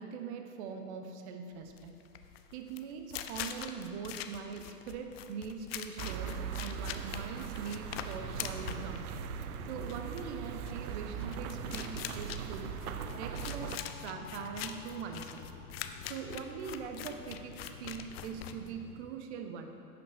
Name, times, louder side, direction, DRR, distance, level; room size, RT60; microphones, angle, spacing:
voice 1, 0.0-2.0 2.5-9.0 9.7-12.8 13.2-13.7 14.0-15.5 16.1-19.7, right 6 dB, 45° right, 6 dB, 0.9 m, -42 dB
sound 1, 1.7-19.1, left 10 dB, 40° left, 0.4 m, -44 dB
sound 2, 6.0-13.8, right 9 dB, 65° right, 0.6 m, -40 dB
sound 3, 8.0-19.1, left 5 dB, 75° left, 0.9 m, -49 dB
10.5 x 5.9 x 3.4 m, 2.6 s
hypercardioid pair, 110°, 47 cm